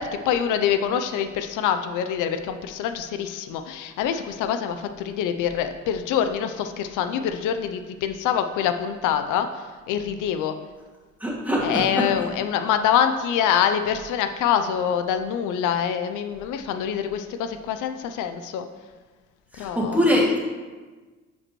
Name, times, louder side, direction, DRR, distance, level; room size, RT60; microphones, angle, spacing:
voice 1, 0.0-10.6 11.6-18.7 19.6-20.1, left 8 dB, 90° left, 8 dB, 0.5 m, -25 dB
voice 2, 11.2-12.1 19.5-20.4, left 1 dB, 5° right, -4 dB, 2.0 m, -22 dB
10.5 x 5.2 x 3.0 m, 1.3 s
cardioid pair, 90°, 30 cm